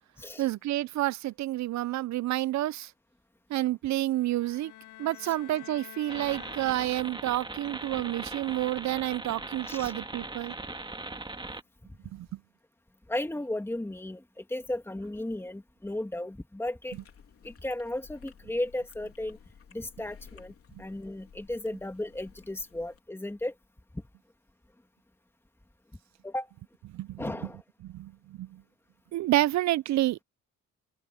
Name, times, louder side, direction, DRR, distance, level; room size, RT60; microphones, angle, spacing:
voice 1, 0.4-2.9 3.5-4.7 5.0-10.5 12.1-12.4 16.9-17.0 20.7-20.8 26.8-27.5 27.8-28.6 29.1-30.2, right 15 dB, 65° right, 0.5 m, -29 dB
sound 1, 4.1-7.3, left 14 dB, 85° left, 1.7 m, -49 dB
sound 2, 6.1-11.6, right 2 dB, 15° right, 2.3 m, -40 dB
voice 2, 13.1-17.0 17.4-19.4 19.7-20.5 20.8-23.5 26.2-26.5 27.2-27.6, left 1 dB, 10° left, 2.5 m, -35 dB
Chewing mastication, 16.9-23.0, left 7 dB, 50° left, 3.5 m, -55 dB
open air
cardioid pair, 90°, 30 cm